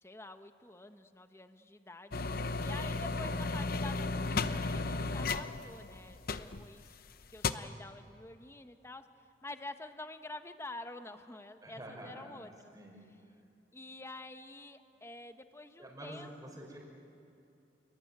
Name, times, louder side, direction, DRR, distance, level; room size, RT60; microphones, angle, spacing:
voice 1, 0.0-2.2 2.6-6.9 7.3-12.7 13.7-16.5, left 2 dB, 15° left, 8 dB, 0.9 m, -48 dB
sound 1, 2.1-6.9 7.2-7.5, left 3 dB, 55° left, 0.8 m, -34 dB
voice 2, 11.6-12.3 12.7-13.0 15.8-16.8, right 1 dB, 20° right, 0 dB, 6.0 m, -47 dB
29.0 x 21.5 x 9.3 m, 2.7 s
head